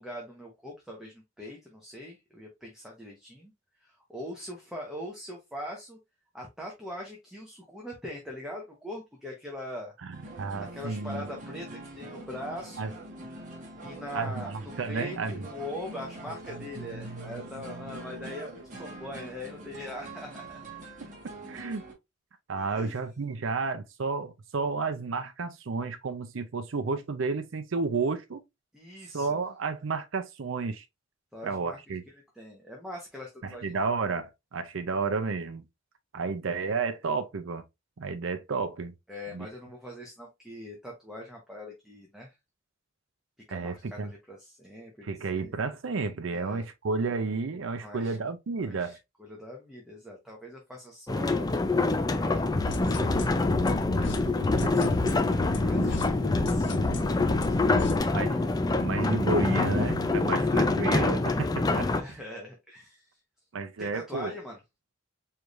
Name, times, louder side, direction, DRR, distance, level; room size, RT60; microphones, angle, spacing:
voice 1, 0.0-3.5 3.8-6.0 6.3-9.9 10.6-13.0 13.8-20.6 22.6-23.0 28.7-29.4 31.3-31.8 32.1-33.7 39.1-42.3 43.5-45.5 46.3-46.6 47.8-48.2 48.6-51.5 51.8-53.4 55.6-58.2 61.7-63.2 63.8-64.6, left 1 dB, 5° right, 1.0 m, -42 dB
voice 2, 10.0-11.3 12.8-12.9 14.1-15.4 16.8-17.4 21.5-21.8 22.5-28.4 29.1-30.8 31.4-32.0 33.4-35.6 36.1-37.6 38.0-38.9 39.3-39.5 43.5-44.1 45.0-49.0 54.2-54.3 54.6-54.9 58.1-61.9 63.5-64.3, right 4 dB, 85° right, 0.6 m, -31 dB
sound 1, 10.1-21.9, right 2 dB, 40° right, 1.3 m, -44 dB
sound 2, 51.1-62.0, left 2 dB, 20° left, 0.4 m, -26 dB
sound 3, 52.5-58.0, left 2 dB, 60° left, 0.6 m, -32 dB
4.7 x 3.3 x 2.4 m
head